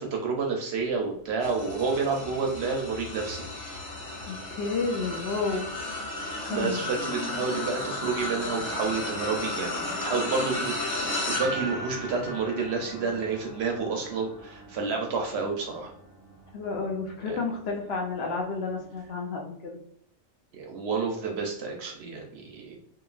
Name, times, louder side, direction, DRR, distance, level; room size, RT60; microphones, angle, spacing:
voice 1, 0.0-3.4 6.5-15.9 17.3-17.4 20.5-22.8, right 4 dB, 65° right, 2 dB, 0.7 m, -30 dB
sound 1, 1.4-16.9 17.4-17.7 18.9-19.0, left 2 dB, 80° left, 1.5 m, -35 dB
voice 2, 4.2-5.7 6.5-6.8 16.5-19.8, left 4 dB, 65° left, -1 dB, 0.7 m, -31 dB
2.9 x 2.4 x 2.4 m, 0.68 s
omnidirectional pair, 1.3 m